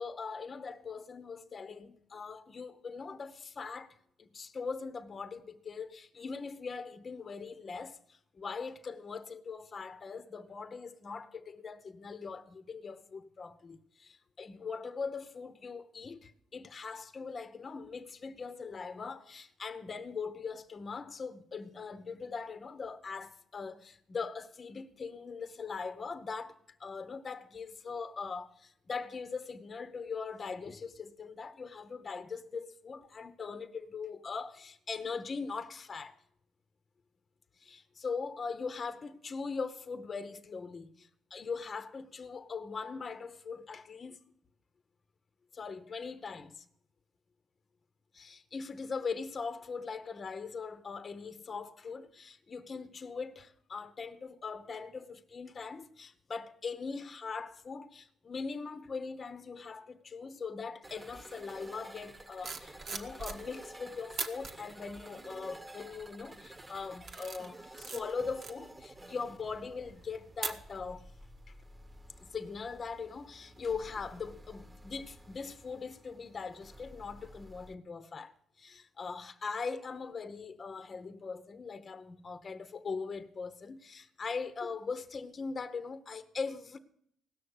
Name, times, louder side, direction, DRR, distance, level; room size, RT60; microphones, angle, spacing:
voice 1, 0.0-26.5 26.8-36.2 37.6-44.2 45.5-46.6 48.1-71.1 72.2-86.8, left 5 dB, 40° left, 0.9 m, -41 dB
sound 1, 60.8-77.7, right 1 dB, 15° right, 1.2 m, -52 dB
sound 2, 62.2-63.7 64.1-64.5 65.2-65.5 66.0-66.4 66.8-71.1 71.4-71.6, right 4 dB, 60° right, 1.3 m, -42 dB
17.0 x 6.5 x 8.0 m
cardioid pair, 90°, 0 cm